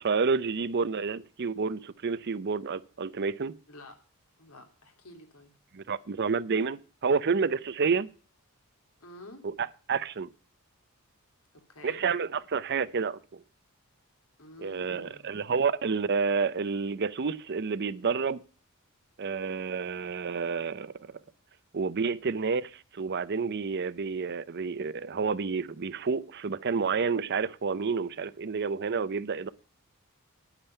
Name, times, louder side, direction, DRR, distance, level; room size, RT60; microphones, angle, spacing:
voice 1, 0.0-3.6 5.7-8.1 9.4-10.3 11.8-13.4 14.6-18.4 19.2-20.9 21.7-29.5, right 5 dB, 50° right, 0.6 m, -29 dB
voice 2, 4.4-5.5 9.0-9.4 11.5-12.0 14.4-15.3, left 1 dB, 80° left, 2.9 m, -50 dB
10.0 x 8.9 x 5.5 m
head